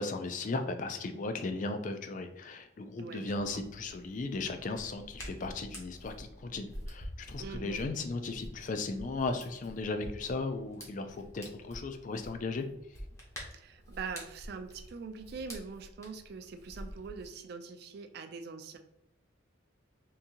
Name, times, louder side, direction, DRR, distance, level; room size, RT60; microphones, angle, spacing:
voice 1, 0.0-12.6, left 3 dB, 40° left, 7 dB, 0.3 m, -36 dB
voice 2, 3.0-3.6 7.4-7.9 13.5-18.8, right 5 dB, 50° right, 8 dB, 0.3 m, -43 dB
Hands, 3.3-17.3, equal, 15° left, 0.8 m, -48 dB
3.7 x 2.7 x 2.7 m, 0.88 s
head